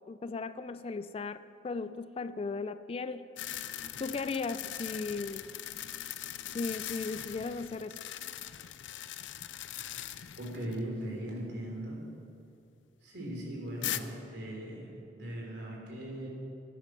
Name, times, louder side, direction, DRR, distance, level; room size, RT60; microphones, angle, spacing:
voice 1, 0.1-3.3 4.0-5.5 6.5-8.0, left 4 dB, 30° left, 13 dB, 0.3 m, -36 dB
sound 1, 3.4-10.8 11.2-11.3 13.8-14.0, left 12 dB, 90° left, 0.5 m, -40 dB
voice 2, 10.4-12.0 13.0-16.3, right 1 dB, 65° right, -2 dB, 3.4 m, -39 dB
13.5 x 9.9 x 6.2 m, 2.5 s
head